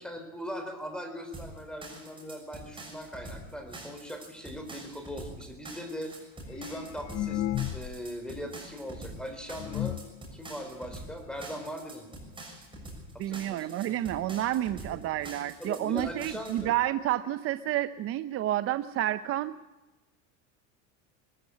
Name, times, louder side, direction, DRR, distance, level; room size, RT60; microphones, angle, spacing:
voice 1, 0.0-6.1 6.5-10.0 10.3-12.2 13.1-13.8 14.9-15.0 15.6-16.7, equal, ahead, 5 dB, 3.9 m, -40 dB
sound 1, 1.3-16.7, right 2 dB, 15° right, 6.6 m, -45 dB
sound 2, 6.5-8.1 8.4-8.5 9.1-9.2 9.5-10.2 10.9-11.0 11.3-11.4 11.7-12.0 12.8-12.9 13.2-13.3 13.9-14.0 14.3-14.4, left 13 dB, 40° left, 0.6 m, -34 dB
voice 2, 13.2-19.5, right 13 dB, 40° right, 12 dB, 0.6 m, -30 dB
21.5 x 14.5 x 8.4 m, 1.1 s
supercardioid pair, 130°, 37 cm